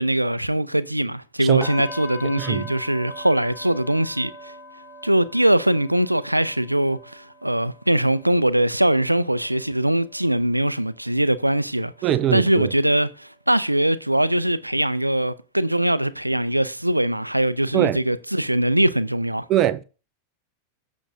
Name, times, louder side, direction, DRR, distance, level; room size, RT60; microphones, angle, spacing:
voice 1, 0.0-4.5 5.0-19.5, right 1 dB, 85° right, 0.5 m, -22 dB
sound 1, 1.6-11.5 11.9-12.2 12.6-12.7, left 2 dB, 25° left, 3.2 m, -42 dB
voice 2, 2.4-2.7 12.0-12.7 17.7-18.0 19.5-19.8, right 12 dB, 35° right, 0.6 m, -22 dB
15.0 x 6.2 x 2.5 m
figure-of-eight pair, 90°, 0 cm